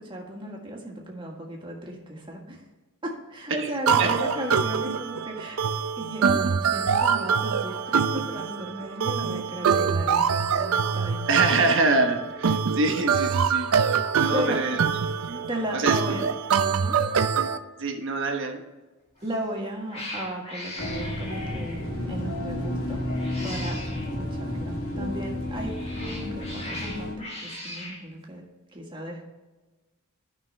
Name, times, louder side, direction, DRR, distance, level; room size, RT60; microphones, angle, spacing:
voice 1, 0.0-2.6 3.0-5.6 6.0-11.7 14.3-14.8 15.5-16.2 16.7-17.0 19.2-23.0 23.4-25.8 26.0-28.4 28.7-29.2, right 1 dB, 20° right, -1 dB, 1.6 m, -35 dB
sound 1, 3.9-17.6, right 6 dB, 80° right, 0.5 m, -25 dB
voice 2, 11.3-14.8 15.3-15.4 15.7-16.3 17.8-18.6, right 3 dB, 60° right, 4 dB, 1.2 m, -25 dB
Cat, 19.2-19.5 19.9-21.9 23.0-24.1 25.4-28.0, left 1 dB, 30° left, 1.7 m, -39 dB
sound 2, 20.8-27.1, left 1 dB, 80° left, 2.0 m, -31 dB
12.5 x 5.5 x 3.2 m, 1.2 s
head